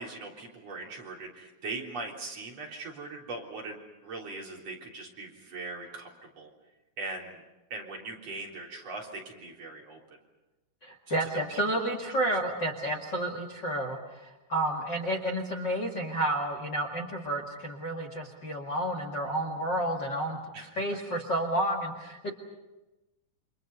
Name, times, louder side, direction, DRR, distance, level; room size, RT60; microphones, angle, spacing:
voice 1, 0.0-3.8 4.0-6.5 7.0-7.4 7.7-10.2 11.1-11.6 12.8-12.9 20.5-20.8, right 3 dB, 45° right, -1 dB, 4.7 m, -40 dB
voice 2, 10.8-20.4 20.8-22.3, right 1 dB, 35° left, 2 dB, 2.3 m, -31 dB
29.0 x 26.0 x 5.5 m, 1.1 s
omnidirectional pair, 4.0 m